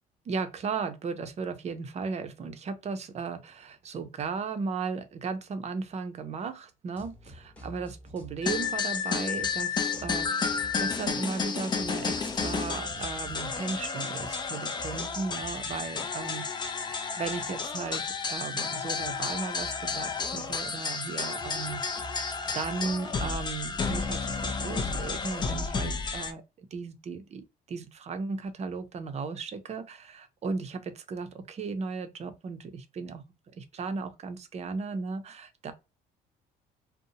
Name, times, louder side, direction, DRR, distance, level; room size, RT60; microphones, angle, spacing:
voice 1, 0.3-16.4 16.8-21.8 22.1-33.2 33.5-35.7, right 4 dB, 40° right, 0.6 m, -36 dB
sound 1, 7.0-9.6 9.9-14.5 14.7-25.0, right 1 dB, 10° left, 0.9 m, -49 dB
sound 2, 8.4-26.3, left 5 dB, 25° left, 0.4 m, -32 dB
2.6 x 2.1 x 2.7 m
cardioid pair, 110°, 17 cm